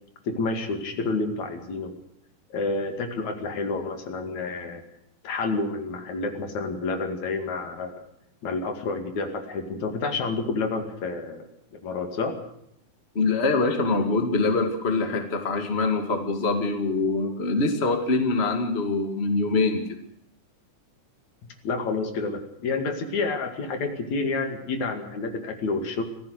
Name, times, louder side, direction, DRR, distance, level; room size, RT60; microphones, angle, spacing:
voice 1, 0.3-1.9 2.5-4.8 5.2-8.0 8.4-11.5 11.7-12.4 21.6-26.0, left 3 dB, 70° left, 5 dB, 3.6 m, -29 dB
voice 2, 13.1-19.8, left 3 dB, 20° left, 5 dB, 2.1 m, -24 dB
25.0 x 17.0 x 6.6 m, 0.75 s
omnidirectional pair, 3.5 m